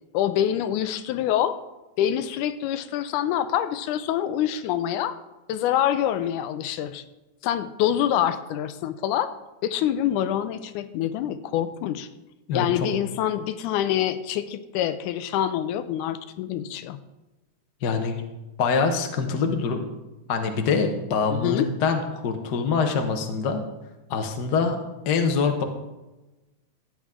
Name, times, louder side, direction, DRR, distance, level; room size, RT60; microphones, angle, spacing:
voice 1, 0.1-1.6 2.0-5.1 5.5-7.0 7.4-9.3 9.6-12.1 12.5-17.0 21.3-21.7, left 11 dB, 85° left, 12 dB, 2.1 m, -26 dB
voice 2, 12.5-12.9 17.8-18.2 18.6-19.8 20.3-23.6 24.1-24.8 25.0-25.6, left 5 dB, 65° left, 5 dB, 1.0 m, -24 dB
14.5 x 9.3 x 3.7 m, 1.1 s
omnidirectional pair, 3.5 m